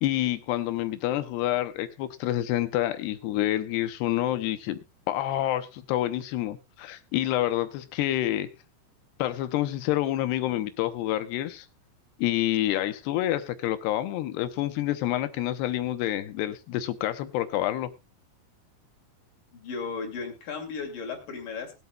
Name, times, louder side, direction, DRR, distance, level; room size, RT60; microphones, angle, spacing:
voice 1, 0.0-4.8 5.1-8.5 9.2-11.7 12.2-17.9, left 14 dB, 85° left, 11 dB, 2.9 m, -28 dB
voice 2, 19.6-21.7, left 5 dB, 55° left, 2 dB, 4.0 m, -35 dB
21.5 x 8.1 x 2.3 m, 0.24 s
omnidirectional pair, 4.8 m